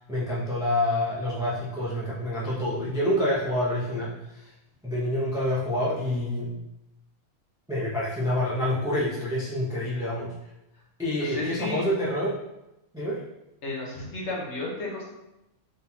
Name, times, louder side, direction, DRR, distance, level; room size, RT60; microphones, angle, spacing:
voice 1, 0.1-4.5 4.8-6.5 7.7-10.3 11.0-12.4 12.9-13.2, left 1 dB, 5° right, -6 dB, 0.3 m, -27 dB
voice 2, 11.3-11.8 13.6-15.1, left 2 dB, 55° left, -3 dB, 1.3 m, -32 dB
3.8 x 3.8 x 2.8 m, 0.91 s
omnidirectional pair, 1.5 m